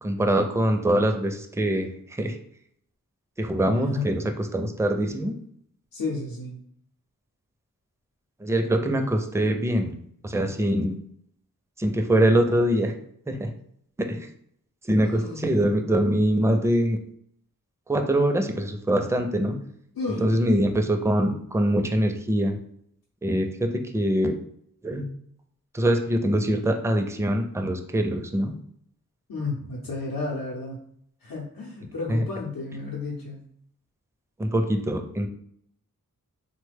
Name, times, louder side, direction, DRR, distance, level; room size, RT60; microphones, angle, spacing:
voice 1, 0.0-2.4 3.4-4.2 4.5-5.3 8.4-10.0 10.2-11.0 11.8-12.9 13.3-13.5 14.0-14.3 14.8-17.0 17.9-19.6 20.2-22.6 23.2-24.4 24.8-25.1 25.7-28.6 32.1-32.2 34.4-35.3, right 1 dB, 10° right, 5 dB, 0.4 m, -23 dB
voice 2, 3.7-4.1 5.9-6.6 15.0-15.5 19.9-20.2 29.3-30.8 31.2-33.4, left 3 dB, 80° left, -4 dB, 0.7 m, -32 dB
3.1 x 2.2 x 3.3 m, 0.68 s
wide cardioid pair, 50°, 34 cm